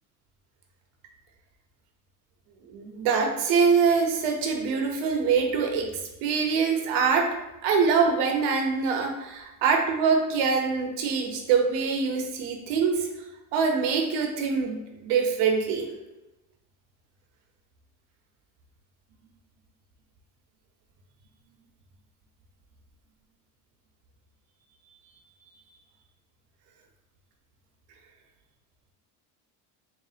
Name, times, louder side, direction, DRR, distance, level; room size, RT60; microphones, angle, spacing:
voice 1, 2.7-5.9 6.2-7.3 7.6-13.1 13.5-15.9, right 5 dB, 85° right, 3 dB, 0.9 m, -24 dB
4.1 x 3.4 x 2.7 m, 1.0 s
cardioid pair, 145°, 39 cm